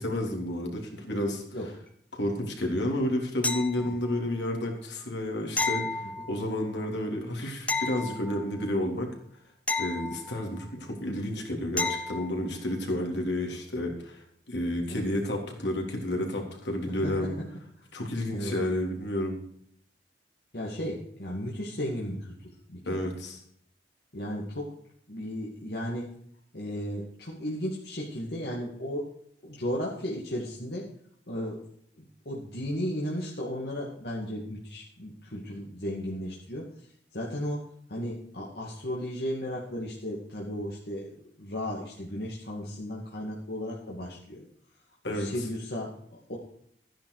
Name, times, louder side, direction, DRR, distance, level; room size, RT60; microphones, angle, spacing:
voice 1, 0.0-1.4 2.1-9.1 9.8-17.4 17.9-19.4 22.9-23.4 45.0-45.3, left 1 dB, 80° left, 1 dB, 3.5 m, -31 dB
sound 1, 3.4-4.2 5.6-6.6 7.7-8.7 9.7-10.7 11.8-12.4 15.1-15.2, left 3 dB, 10° left, 0.8 m, -32 dB
voice 2, 16.9-17.3 18.3-18.5 20.5-23.1 24.1-24.7 25.1-26.1 26.5-29.1 29.4-30.9 31.3-31.6 32.0-36.7 37.1-44.5 45.1-46.4, equal, 60° left, -3 dB, 2.3 m, -35 dB
13.5 x 10.0 x 4.9 m, 0.67 s
head